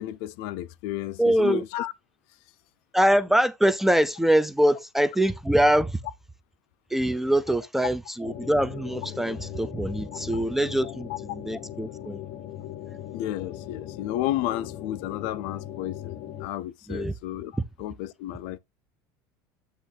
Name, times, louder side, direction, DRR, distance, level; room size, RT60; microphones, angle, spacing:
voice 1, 0.0-1.9 10.1-10.4 10.8-11.2 13.1-18.6, left 13 dB, 70° left, 0.5 m, -32 dB
voice 2, 1.2-1.6 2.9-5.9 6.9-12.2 16.9-17.1, right 1 dB, 5° right, 0.4 m, -23 dB
sound 1, 8.2-16.5, left 12 dB, 55° left, 0.9 m, -39 dB
8.4 x 2.9 x 5.7 m
cardioid pair, 150°, 8 cm